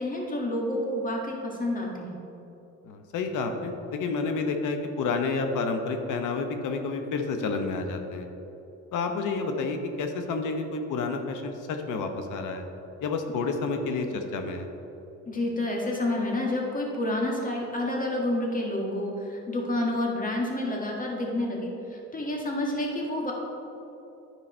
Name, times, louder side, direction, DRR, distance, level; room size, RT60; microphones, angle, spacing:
voice 1, 0.0-2.2 15.3-23.3, left 1 dB, 25° left, -1 dB, 1.7 m, -29 dB
voice 2, 2.8-8.3 8.9-12.6 13.0-14.7, left 4 dB, 85° left, 6 dB, 0.9 m, -30 dB
10.5 x 4.8 x 4.3 m, 3.0 s
cardioid pair, 90°, 30 cm